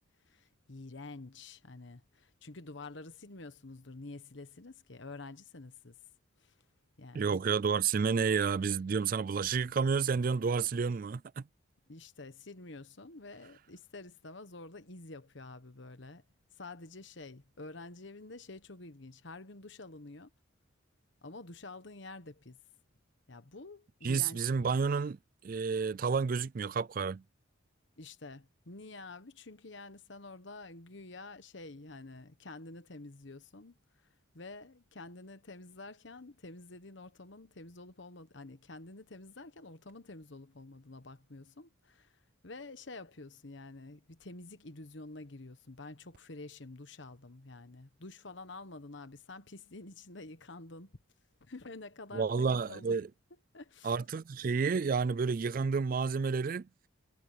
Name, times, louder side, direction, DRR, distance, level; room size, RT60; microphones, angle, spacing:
voice 1, 0.2-6.0 6.4-6.6 7.0-7.4 11.9-16.2 16.5-20.3 21.2-22.6 23.3-24.7 28.0-33.8 34.3-50.9 51.4-53.0 53.5-53.9, left 2 dB, 60° left, 1.2 m, -48 dB
voice 2, 7.1-11.4 24.0-25.2 25.4-27.2 52.1-53.1 53.8-56.7, right 5 dB, 45° right, 0.3 m, -30 dB
head